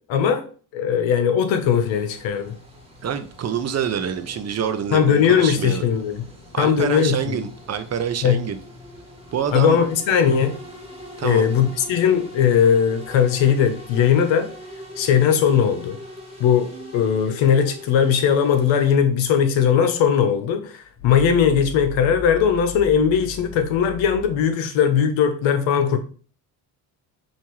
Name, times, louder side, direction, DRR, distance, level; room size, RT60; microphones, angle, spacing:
voice 1, 0.1-0.4 0.7-2.5 4.9-6.3 6.6-7.4 8.2-8.5 9.5-10.6 11.2-14.5 15.0-16.0 16.4-26.0, left 7 dB, 65° left, 1.0 m, -19 dB
sound 1, 1.6-19.0, equal, 10° right, 1.5 m, -42 dB
voice 2, 3.0-5.8 6.5-8.6 9.3-9.8 11.2-11.5, right 8 dB, 30° right, 0.6 m, -26 dB
sound 2, 20.8-24.5, left 5 dB, 35° left, 1.0 m, -37 dB
5.6 x 2.6 x 3.0 m
supercardioid pair, 85°, 50 cm